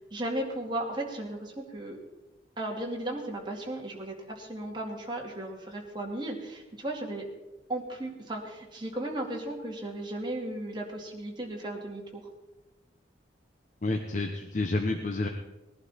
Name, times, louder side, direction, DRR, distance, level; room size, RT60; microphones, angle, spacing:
voice 1, 0.1-2.0 2.6-7.3 7.7-12.3, right 1 dB, 25° right, -1 dB, 2.3 m, -35 dB
voice 2, 13.8-15.3, left 2 dB, 45° left, 4 dB, 0.9 m, -29 dB
19.0 x 11.5 x 4.3 m, 1.0 s
head